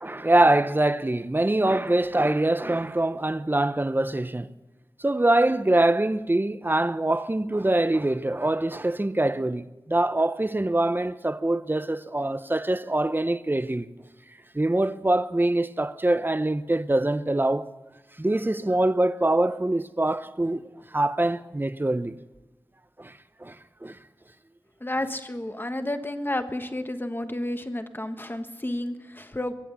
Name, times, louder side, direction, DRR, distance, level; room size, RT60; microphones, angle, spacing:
voice 1, 0.0-4.5 5.0-13.9 14.5-17.7 18.2-20.6 20.9-22.2 23.0-23.1 23.4-23.6 23.8-24.0, right 1 dB, 25° right, 0.8 m, -24 dB
voice 2, 24.8-29.5, left 1 dB, 25° left, 1.4 m, -31 dB
22.5 x 8.5 x 7.0 m
wide cardioid pair, 45°, 8 cm